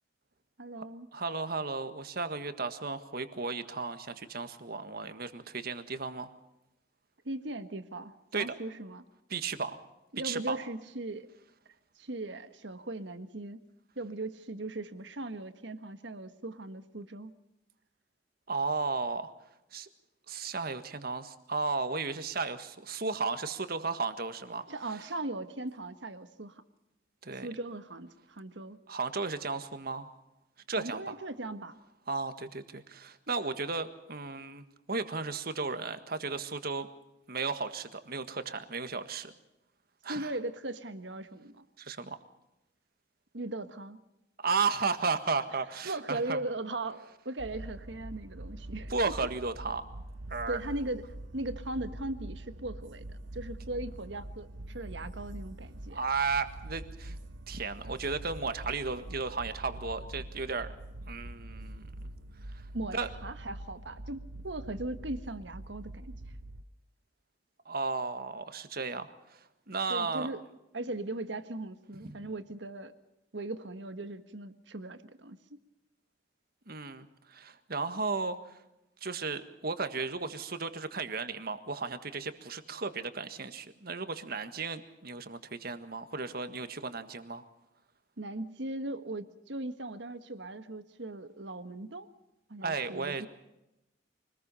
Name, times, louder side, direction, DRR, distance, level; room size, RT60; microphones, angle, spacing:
voice 1, 0.6-1.1 7.2-9.0 10.1-11.3 12.0-13.6 13.9-17.3 24.7-26.6 27.4-28.8 30.8-31.8 40.1-41.6 43.3-44.0 45.8-49.1 50.5-51.0 51.3-56.0 62.7-66.1 69.9-70.4 70.7-72.9 73.3-75.6 88.2-92.1 92.5-93.3, right 2 dB, 70° right, 10 dB, 1.5 m, -39 dB
voice 2, 1.1-6.3 8.3-8.4 9.3-9.8 10.2-10.6 18.5-19.3 19.7-19.9 20.3-24.6 27.2-27.5 28.9-30.1 30.7-31.2 32.1-36.9 37.3-39.3 40.0-40.3 41.8-42.2 44.4-46.4 48.9-49.8 50.3-50.6 55.9-57.2 57.5-60.7 61.1-61.8 62.5-62.6 62.9-63.1 67.6-69.4 69.7-70.3 72.0-72.2 76.7-78.6 79.0-87.4 92.6-93.3, right 4 dB, 55° right, 10 dB, 1.6 m, -34 dB
sound 1, 47.4-66.6, right 1 dB, 85° right, 1.1 m, -44 dB
25.0 x 20.0 x 5.6 m, 0.89 s
head